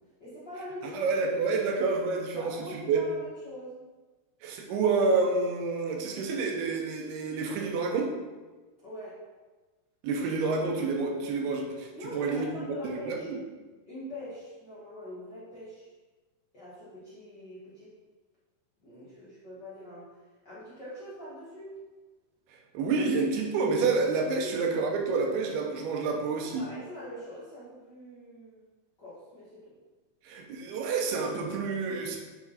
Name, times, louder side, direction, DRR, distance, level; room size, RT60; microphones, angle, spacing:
voice 1, 0.0-1.1 2.4-3.8 8.8-9.2 11.9-13.3 13.9-15.9 16.5-17.9 18.8-21.7 24.4-24.6 26.3-28.6 29.0-29.7, left 1 dB, 55° left, -11 dB, 1.1 m, -43 dB
voice 2, 0.9-3.0 4.4-8.1 10.0-13.4 22.7-26.6 30.3-32.2, right 4 dB, 75° right, 2 dB, 2.6 m, -28 dB
9.1 x 4.2 x 4.0 m, 1.3 s
omnidirectional pair, 5.0 m